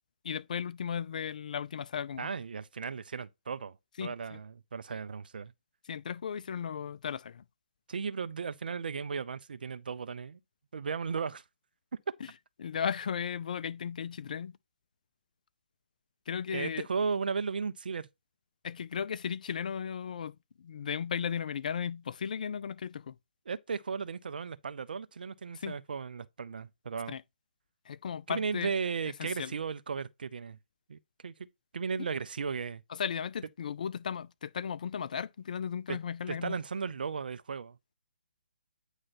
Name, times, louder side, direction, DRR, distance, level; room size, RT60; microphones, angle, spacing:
voice 1, 0.2-2.3 4.0-4.4 5.9-7.4 12.6-14.5 16.3-16.9 18.6-23.1 25.6-25.7 27.1-27.2 27.9-28.7 29.2-29.5 32.0-32.1 32.9-36.6, left 7 dB, 50° left, 0.5 m, -35 dB
voice 2, 2.2-5.5 7.9-10.4 10.7-11.4 16.5-18.1 23.5-27.2 28.3-30.6 30.9-31.3 31.7-32.8 35.9-36.0 36.3-37.8, right 5 dB, 65° right, 0.6 m, -35 dB
9.0 x 3.2 x 4.1 m
figure-of-eight pair, 150°, 5 cm